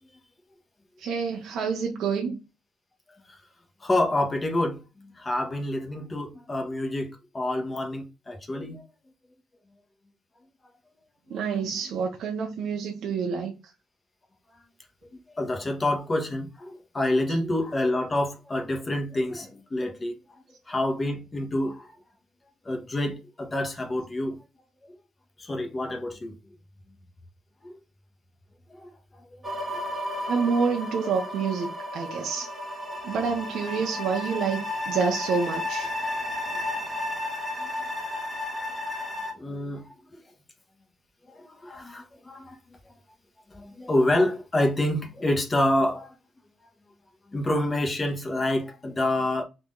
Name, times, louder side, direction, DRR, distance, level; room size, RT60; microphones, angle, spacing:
voice 1, 1.0-2.4 11.3-13.5 30.2-32.5 33.0-35.9, right 5 dB, 75° right, 0.8 m, -28 dB
voice 2, 3.8-8.9 11.3-11.4 14.5-14.6 15.3-20.2 20.7-22.0 22.6-24.4 25.4-26.3 27.6-27.8 28.7-29.8 37.6-37.7 38.1-38.4 39.2-40.2 41.2-42.6 43.5-46.1 47.3-49.4, left 1 dB, 25° left, 1.2 m, -28 dB
sound 1, 29.4-39.3, left 1 dB, 20° right, 1.4 m, -33 dB
3.9 x 2.9 x 3.7 m
cardioid pair, 90°, 0 cm